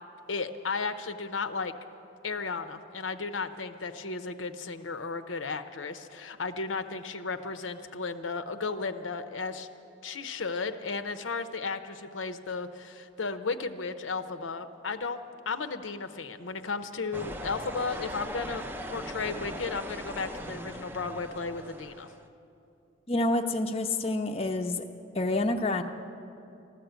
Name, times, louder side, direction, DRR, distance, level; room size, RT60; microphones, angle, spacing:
voice 1, 0.3-1.7 2.2-9.7 10.0-15.2 15.5-22.1, left 4 dB, 85° left, 8 dB, 0.8 m, -34 dB
sound 1, 17.1-22.3, equal, 10° right, 0.6 m, -39 dB
voice 2, 23.1-24.9 25.1-25.8, left 2 dB, 30° left, 5 dB, 0.6 m, -28 dB
14.0 x 13.0 x 8.0 m, 2.8 s
head